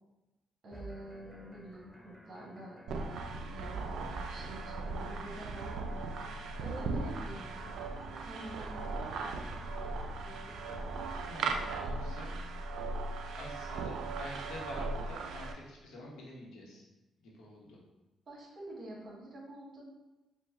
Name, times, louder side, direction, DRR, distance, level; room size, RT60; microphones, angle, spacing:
voice 1, 0.6-5.8 6.6-7.7 8.0-9.4 18.3-19.8, right 1 dB, 50° right, -3 dB, 1.5 m, -47 dB
sound 1, 0.7-11.0, right 1 dB, 5° right, 0.4 m, -51 dB
sound 2, 2.9-15.5, right 3 dB, 75° right, 0.4 m, -38 dB
voice 2, 11.2-12.5 13.0-16.8 17.2-17.8, left 1 dB, 80° left, -3 dB, 1.0 m, -47 dB
4.6 x 2.2 x 3.6 m, 1.0 s
cardioid pair, 90°, 0 cm